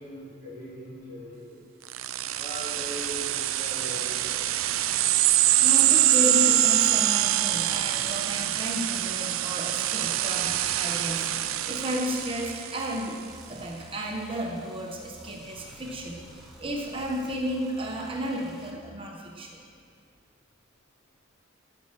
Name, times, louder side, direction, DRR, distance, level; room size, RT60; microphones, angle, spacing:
voice 1, 0.0-1.6 1.9-2.0 2.3-4.4 13.4-13.6 15.4-15.8 16.2-16.6, right 1 dB, 40° left, -5 dB, 3.2 m, -41 dB
sound 1, 1.9-13.0, right 13 dB, 85° right, 0.5 m, -25 dB
voice 2, 5.6-13.2 13.5-16.2 16.6-19.6, equal, 25° right, 0 dB, 1.1 m, -33 dB
sound 2, 11.3-18.7, right 1 dB, ahead, 1.4 m, -51 dB
11.0 x 8.8 x 7.4 m, 2.2 s
head